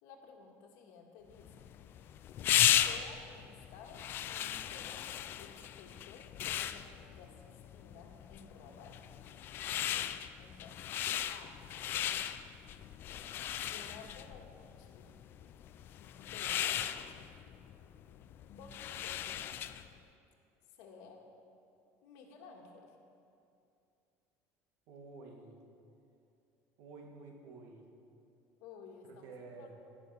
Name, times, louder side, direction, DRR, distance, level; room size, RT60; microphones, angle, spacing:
voice 1, 0.0-1.7 2.8-5.1 5.4-9.0 10.4-10.9 11.3-11.6 13.6-15.1 16.2-16.8 18.5-19.5 20.7-21.2 22.0-23.0 28.6-29.9, left 5 dB, 75° left, 1 dB, 1.9 m, -54 dB
sound 1, 1.4-19.9, left 11 dB, 35° left, 0.3 m, -36 dB
voice 2, 24.9-25.6 26.8-27.8 29.0-29.7, right 3 dB, 65° right, 1 dB, 1.9 m, -51 dB
17.0 x 6.7 x 6.7 m, 2.6 s
cardioid pair, 180°, 6 cm